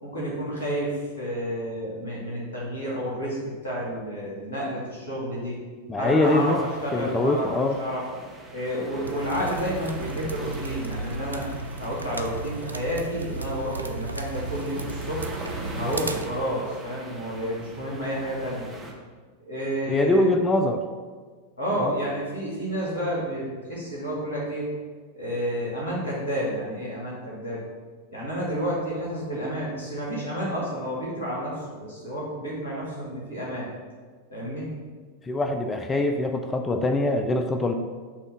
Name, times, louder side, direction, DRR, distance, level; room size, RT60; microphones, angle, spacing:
voice 1, 0.0-5.6 6.0-8.0 8.5-11.4 11.8-15.2 15.8-18.7 19.4-20.3 21.6-24.7 25.1-27.6 28.1-33.7 34.3-34.7, equal, 60° left, -6 dB, 1.8 m, -30 dB
voice 2, 5.9-6.6 6.9-7.8 19.9-20.8 21.8-21.9 35.2-37.7, left 2 dB, 15° left, 5 dB, 0.4 m, -23 dB
sound 1, 6.2-18.9, right 1 dB, 10° right, 1.0 m, -41 dB
sound 2, 9.0-16.3, right 3 dB, 80° right, 0.3 m, -35 dB
7.0 x 2.8 x 5.7 m, 1.5 s
figure-of-eight pair, 90°, 0 cm